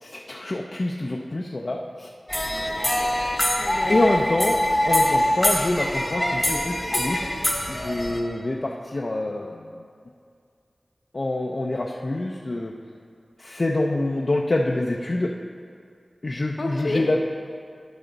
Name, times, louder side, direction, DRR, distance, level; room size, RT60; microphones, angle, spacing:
voice 1, 0.0-2.1 3.9-7.2 7.7-9.8 11.1-12.7 13.4-15.3 16.2-17.2, left 2 dB, 45° left, -1 dB, 0.5 m, -26 dB
sound 1, 2.3-8.2, left 1 dB, 20° left, 0.8 m, -24 dB
voice 2, 2.5-4.1 16.6-17.0, left 2 dB, 65° left, 1 dB, 0.9 m, -32 dB
11.5 x 4.8 x 4.0 m, 2.3 s
wide cardioid pair, 80°, 0 cm